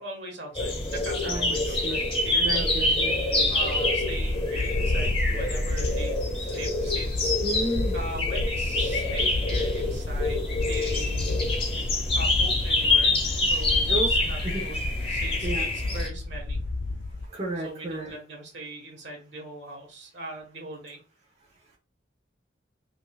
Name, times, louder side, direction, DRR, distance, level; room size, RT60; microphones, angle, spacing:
voice 1, 0.0-2.7 3.0-11.9 12.1-16.6 17.6-21.0, right 2 dB, 70° right, 1 dB, 1.4 m, -41 dB
sound 1, 0.5-16.1, left 2 dB, 30° left, 0.9 m, -26 dB
voice 2, 1.2-2.0 2.4-3.5 7.4-7.9 13.9-14.1 14.4-14.6 15.4-15.6 17.3-18.1, right 1 dB, 35° right, -3 dB, 0.9 m, -32 dB
sound 2, 4.0-17.3, left 2 dB, 75° left, 0.4 m, -32 dB
5.2 x 2.6 x 2.3 m, 0.36 s
head